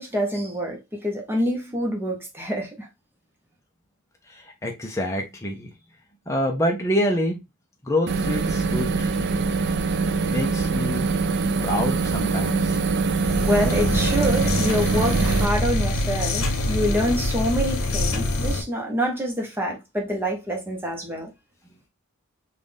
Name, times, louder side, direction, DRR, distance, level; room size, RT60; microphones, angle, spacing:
voice 1, 0.0-2.9 13.4-21.3, equal, 10° right, 1.0 m, -26 dB
voice 2, 4.3-5.7 6.3-7.4 7.8-9.1 10.3-11.1 11.6-12.8, left 1 dB, 15° left, 0.7 m, -26 dB
sound 1, 8.1-15.5, right 4 dB, 50° right, 0.4 m, -23 dB
sound 2, 13.2-18.6, left 1 dB, 85° left, 0.9 m, -25 dB
4.0 x 2.5 x 3.4 m
head